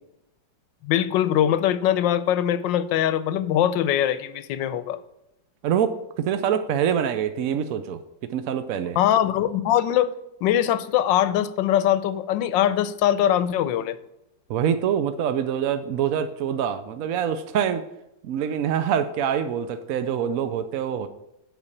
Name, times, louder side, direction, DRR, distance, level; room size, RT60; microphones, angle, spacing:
voice 1, 0.8-5.0 9.0-10.1 10.4-14.0, left 11 dB, 75° left, 1.3 m, -22 dB
voice 2, 5.6-9.0 14.5-17.8 18.2-21.1, right 8 dB, 70° right, 0.8 m, -25 dB
8.2 x 5.3 x 7.1 m
omnidirectional pair, 2.1 m